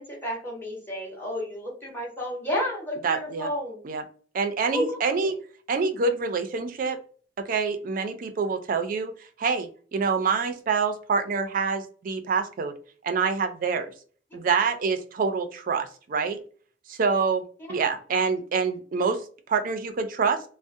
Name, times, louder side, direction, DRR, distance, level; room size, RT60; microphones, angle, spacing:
voice 1, 0.0-3.8 4.7-5.0 5.2-5.3, left 1 dB, 15° left, -4 dB, 1.0 m, -31 dB
voice 2, 3.0-3.5 3.8-4.0 4.3-5.3 5.7-7.0 7.5-9.1 9.4-12.7 13.0-13.9 14.3-16.4 16.9-17.4 17.7-19.2 19.5-20.4, right 5 dB, 50° right, 7 dB, 0.4 m, -26 dB
2.4 x 2.0 x 2.5 m, 0.42 s
head